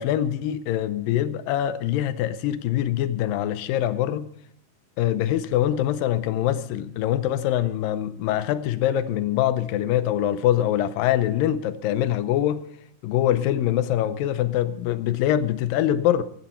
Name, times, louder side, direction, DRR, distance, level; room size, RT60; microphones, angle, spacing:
voice 1, 0.0-4.3 5.0-12.6 13.0-16.2, left 12 dB, 80° left, 2.4 m, -24 dB
14.5 x 14.5 x 4.4 m
omnidirectional pair, 4.1 m